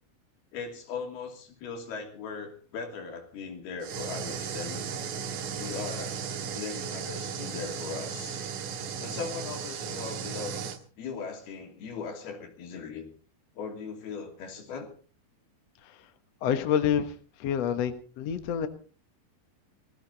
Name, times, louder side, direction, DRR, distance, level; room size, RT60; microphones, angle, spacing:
voice 1, 0.5-4.9 5.6-6.2 6.6-8.4 9.0-10.6 11.0-13.1 13.6-14.9, left 5 dB, 80° left, 4 dB, 4.7 m, -39 dB
sound 1, 3.8-10.8, right 6 dB, 65° right, 2.7 m, -35 dB
voice 2, 16.4-17.1 17.4-18.7, left 8 dB, 60° left, 9 dB, 1.9 m, -27 dB
20.0 x 15.5 x 4.1 m, 0.37 s
omnidirectional pair, 4.4 m